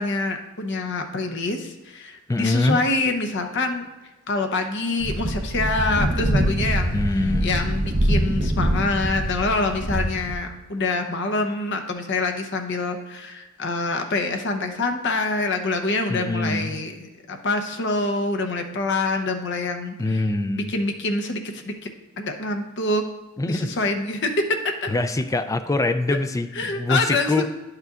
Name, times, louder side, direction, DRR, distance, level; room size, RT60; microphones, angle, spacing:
voice 1, 0.0-3.9 4.3-20.2 20.6-21.7 22.2-23.0 23.5-24.3 24.8-24.9 26.1-26.2 26.5-27.5, left 3 dB, 55° left, 4 dB, 0.8 m, -26 dB
voice 2, 2.3-2.8 6.9-7.5 16.1-16.7 20.0-20.7 23.4-23.8 24.9-27.5, left 2 dB, 15° left, 10 dB, 0.3 m, -24 dB
sound 1, 5.0-10.3, right 1 dB, 40° right, 0.8 m, -24 dB
10.5 x 6.6 x 2.4 m, 1.1 s
head